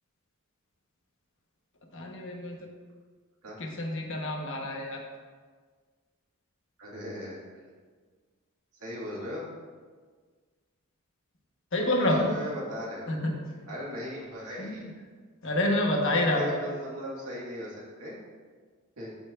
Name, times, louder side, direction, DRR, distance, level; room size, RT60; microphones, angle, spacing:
voice 1, 1.9-2.7 3.6-5.0 11.7-12.3 13.1-13.3 14.6-14.7 15.4-16.6, left 1 dB, 60° left, 0 dB, 1.1 m, -28 dB
voice 2, 6.8-7.6 8.8-9.5 11.8-13.1 13.7-14.9 16.1-18.2 19.0-19.1, left 1 dB, 80° right, -5 dB, 1.9 m, -38 dB
13.0 x 4.4 x 2.4 m, 1.5 s
head